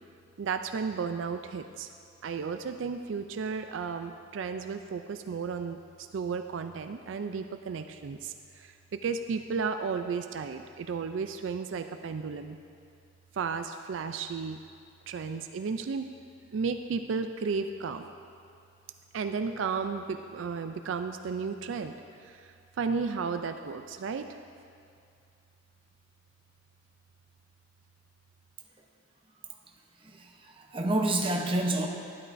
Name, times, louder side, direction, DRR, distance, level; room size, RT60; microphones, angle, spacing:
voice 1, 0.4-1.9 2.2-12.6 13.3-14.6 15.1-16.1 16.5-18.1 19.1-21.9 22.2-24.3, right 5 dB, 80° right, 8 dB, 0.4 m, -33 dB
voice 2, 30.0-31.9, right 1 dB, 30° right, 1 dB, 0.8 m, -29 dB
12.0 x 11.0 x 2.6 m, 2.4 s
head